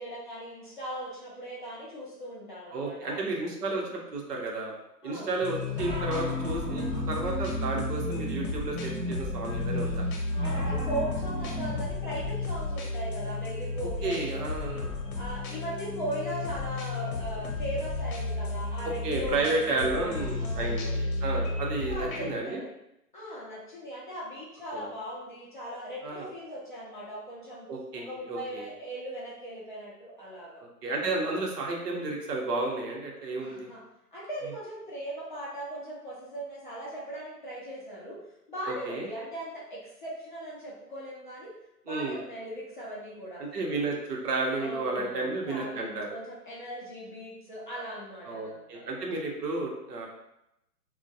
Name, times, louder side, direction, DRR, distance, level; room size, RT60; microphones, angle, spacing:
voice 1, 0.0-3.2 3.7-4.0 5.0-5.4 10.3-14.8 15.2-21.1 21.9-22.7 23.1-27.7 28.0-30.6 33.3-33.8 34.1-38.2 38.5-41.5 41.8-43.4 44.6-48.8, right 1 dB, 35° left, -6 dB, 0.4 m, -39 dB
voice 2, 2.7-4.7 5.0-10.0 14.0-15.0 18.8-22.6 24.7-24.9 26.0-26.3 27.7-28.7 30.6-33.7 38.7-39.0 41.9-42.2 43.4-46.1 48.3-50.1, right 2 dB, 75° right, -1 dB, 0.8 m, -32 dB
sound 1, 5.4-22.4, left 3 dB, 60° left, 0.7 m, -33 dB
sound 2, 5.7-11.8, right 1 dB, 35° right, 0.6 m, -35 dB
2.2 x 2.2 x 2.6 m, 0.85 s
hypercardioid pair, 130°, 48 cm